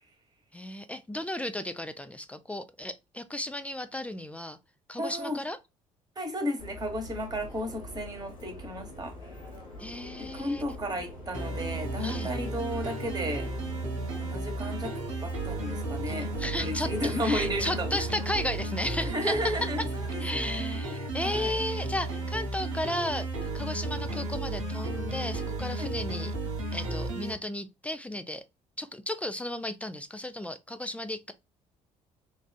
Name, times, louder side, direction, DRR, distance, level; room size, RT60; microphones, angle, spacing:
voice 1, 0.5-4.6 4.9-5.6 9.8-10.6 12.0-12.3 16.1-19.5 20.2-26.3 26.7-28.4 28.8-31.3, left 1 dB, 10° left, 0.3 m, -34 dB
voice 2, 5.0-5.4 6.2-9.1 10.2-13.5 14.2-14.9 15.2-18.1 19.0-21.6 25.8-25.9, equal, 25° right, 1.2 m, -34 dB
Subway metro underground, 6.6-20.8, left 1 dB, 80° left, 0.9 m, -45 dB
sound 1, 11.3-27.3, right 2 dB, 80° right, 0.8 m, -33 dB
3.3 x 2.4 x 2.3 m
figure-of-eight pair, 50°, 17 cm